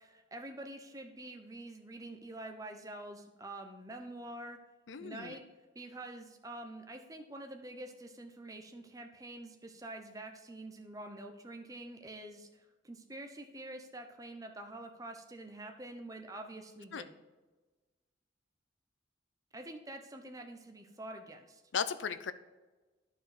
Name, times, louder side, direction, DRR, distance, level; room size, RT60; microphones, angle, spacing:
voice 1, 0.0-4.6 5.0-5.4 5.7-17.1 19.5-21.6, right 1 dB, 20° right, 5 dB, 0.9 m, -46 dB
voice 2, 4.9-5.4 16.9-17.0 21.7-22.3, left 6 dB, 80° left, 13 dB, 0.5 m, -36 dB
11.5 x 4.6 x 5.1 m, 1.2 s
head